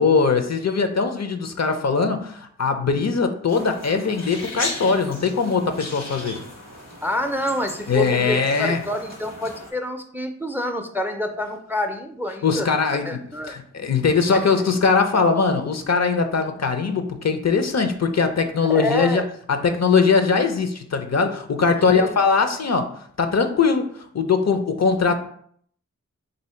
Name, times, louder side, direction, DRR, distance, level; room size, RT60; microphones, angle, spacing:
voice 1, 0.0-6.4 7.9-8.8 12.4-13.2 13.5-19.2 19.5-22.9 23.2-25.2, left 5 dB, 60° left, 7 dB, 0.6 m, -21 dB
sound 1, 3.5-9.7, left 1 dB, 85° left, 1.4 m, -36 dB
voice 2, 7.0-13.6 14.3-14.4 18.5-19.3 21.8-22.2, left 1 dB, 5° right, 6 dB, 0.4 m, -28 dB
3.4 x 2.7 x 4.3 m, 0.62 s
wide cardioid pair, 50°, 30 cm